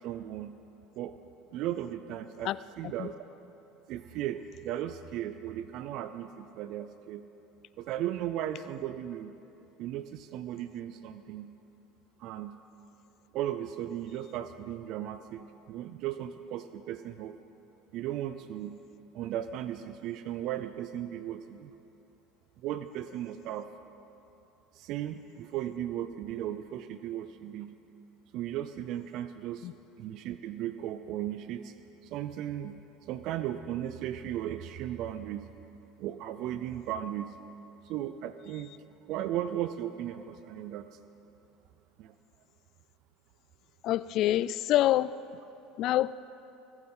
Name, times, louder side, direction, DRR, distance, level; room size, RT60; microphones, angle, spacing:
voice 1, 0.0-0.5 1.0-1.2 1.5-3.2 3.9-7.2 7.8-9.3 9.8-11.5 12.2-12.6 13.3-17.4 17.9-18.8 19.1-21.7 22.6-23.7 24.7-27.7 28.3-29.7 30.0-31.7 32.0-32.8 33.1-35.5 36.0-37.3 37.8-38.7 39.1-40.9 42.0-42.1, right 11 dB, 60° right, 11 dB, 0.5 m, -36 dB
voice 2, 43.8-45.1 45.8-46.1, left 14 dB, 55° left, 18 dB, 0.3 m, -26 dB
22.5 x 7.9 x 5.6 m, 2.9 s
supercardioid pair, 110°, 0 cm